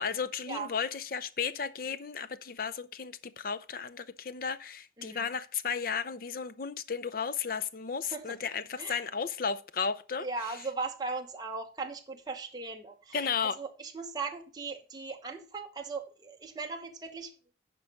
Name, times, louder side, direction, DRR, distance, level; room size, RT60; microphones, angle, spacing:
voice 1, 0.0-10.3 13.1-13.6, left 6 dB, 50° left, 0.5 m, -34 dB
voice 2, 5.0-5.3 8.1-8.4 8.8-9.0 10.2-13.3 13.6-17.3, right 4 dB, 20° right, 1.0 m, -38 dB
10.5 x 4.6 x 5.2 m
head